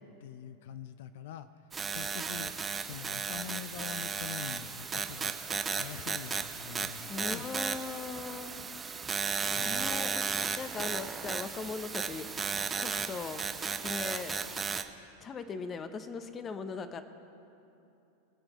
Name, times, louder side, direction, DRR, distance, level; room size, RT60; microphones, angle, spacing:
voice 1, 0.0-1.5 1.9-5.4 5.7-7.5 9.5-10.0, left 10 dB, 70° left, 12 dB, 0.5 m, -44 dB
sound 1, 1.7-14.8, right 5 dB, 15° right, 0.5 m, -35 dB
voice 2, 7.1-8.5 9.6-10.2 10.6-12.3 12.7-13.4 13.8-14.3 15.2-17.0, left 5 dB, 20° left, 10 dB, 0.7 m, -39 dB
23.0 x 7.7 x 3.0 m, 2.9 s
supercardioid pair, 140°, 0 cm